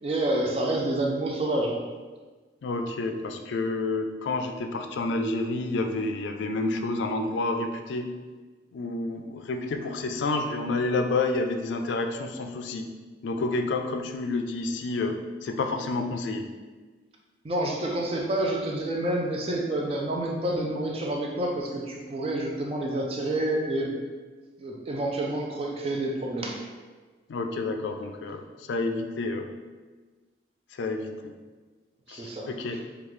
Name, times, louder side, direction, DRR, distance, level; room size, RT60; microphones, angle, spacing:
voice 1, 0.0-1.8 17.4-23.9 24.6-26.6 32.1-32.8, right 1 dB, 30° right, 0 dB, 0.4 m, -28 dB
voice 2, 2.6-8.1 8.7-12.9 13.2-16.5 27.3-29.5 30.7-31.1 32.1-32.8, left 2 dB, 80° left, 5 dB, 0.3 m, -29 dB
3.7 x 2.3 x 3.1 m, 1.3 s
head